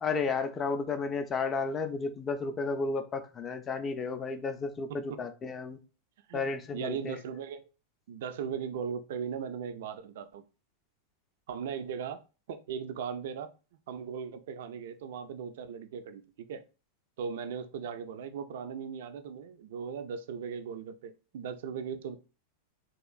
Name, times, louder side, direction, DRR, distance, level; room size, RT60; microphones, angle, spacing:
voice 1, 0.0-5.8 6.3-7.2, left 4 dB, 25° left, 0.3 m, -32 dB
voice 2, 4.9-5.2 6.3-6.5 6.7-7.7 8.1-10.4 11.5-12.2 12.5-13.5 13.9-16.6 17.2-22.2, right 7 dB, 55° right, 0.3 m, -38 dB
3.0 x 2.9 x 2.3 m
figure-of-eight pair, 90°, 0 cm